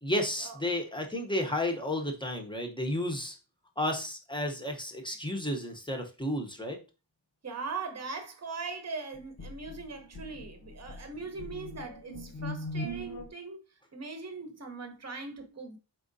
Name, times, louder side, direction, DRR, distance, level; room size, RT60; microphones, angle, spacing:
voice 1, 0.0-3.4 3.8-6.8, left 1 dB, 10° left, 0.8 m, -32 dB
voice 2, 7.4-13.6 13.9-15.8, right 4 dB, 35° right, 0.9 m, -40 dB
sound 1, 9.1-13.3, equal, 60° left, 0.9 m, -40 dB
4.2 x 3.8 x 2.6 m
wide cardioid pair, 115°, 43 cm